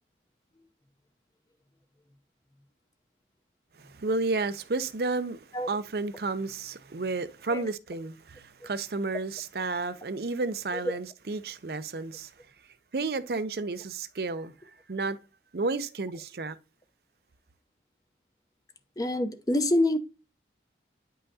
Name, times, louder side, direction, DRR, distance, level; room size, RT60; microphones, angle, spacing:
voice 1, 3.8-12.3 12.9-14.5 14.9-15.2 15.5-16.6, right 3 dB, 60° right, 0.6 m, -32 dB
voice 2, 19.0-20.0, left 1 dB, 20° left, 0.7 m, -26 dB
10.0 x 5.6 x 2.8 m
head